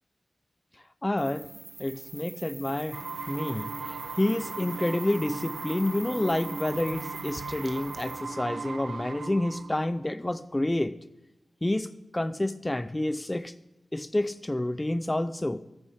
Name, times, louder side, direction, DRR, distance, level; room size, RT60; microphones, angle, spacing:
voice 1, 1.0-1.5 1.8-3.7 4.2-10.9 11.6-11.9 12.1-13.5 13.9-15.6, left 1 dB, 15° left, 14 dB, 0.5 m, -29 dB
sound 1, 1.2-8.2, right 3 dB, 45° right, 1.2 m, -44 dB
sound 2, 2.9-9.8, right 4 dB, 80° right, 0.7 m, -38 dB
14.0 x 9.8 x 4.8 m, 0.91 s
wide cardioid pair, 130°, 0 cm